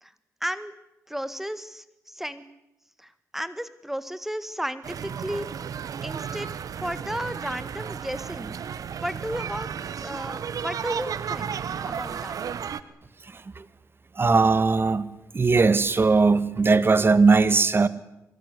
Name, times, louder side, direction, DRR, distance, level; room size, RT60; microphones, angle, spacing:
voice 1, 0.4-0.7 1.1-2.5 3.0-5.5 6.0-6.5 6.8-8.6 9.0-9.7 10.0-11.5 11.8-12.3, equal, 5° right, 13 dB, 1.6 m, -33 dB
sound 1, 4.8-12.8, right 7 dB, 75° right, 1.3 m, -33 dB
voice 2, 13.3-13.6 14.2-15.1 15.3-17.9, right 4 dB, 40° right, 15 dB, 1.7 m, -19 dB
24.0 x 20.5 x 9.7 m, 0.90 s
cardioid pair, 75°, 6 cm